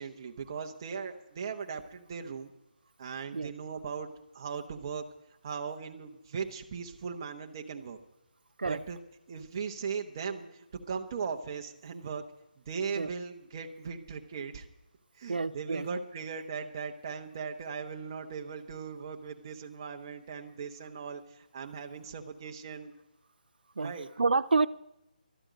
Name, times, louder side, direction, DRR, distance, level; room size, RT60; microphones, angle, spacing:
voice 1, 0.0-2.5 3.0-5.0 5.4-8.0 8.6-9.0 9.3-12.2 12.7-14.7 15.2-22.9 23.8-24.1, right 5 dB, 25° right, 4 dB, 1.0 m, -38 dB
voice 2, 15.3-15.9 23.8-24.7, right 4 dB, 90° right, 14 dB, 0.5 m, -28 dB
12.5 x 8.9 x 9.1 m, 0.85 s
hypercardioid pair, 175°, 5 cm